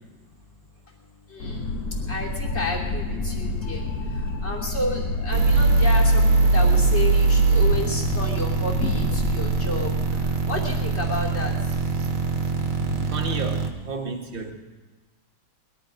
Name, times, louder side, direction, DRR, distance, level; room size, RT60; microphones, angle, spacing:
sound 1, 1.4-13.1, left 2 dB, 50° left, 2.1 m, -29 dB
voice 1, 2.1-3.8 4.4-6.2 6.5-9.9 10.5-11.5, left 2 dB, 30° left, -2 dB, 3.1 m, -31 dB
sound 2, 5.3-13.7, right 4 dB, 80° right, 2.2 m, -22 dB
voice 2, 13.1-14.5, right 3 dB, 30° right, 2 dB, 1.5 m, -32 dB
21.0 x 12.0 x 5.2 m, 1.3 s
omnidirectional pair, 2.2 m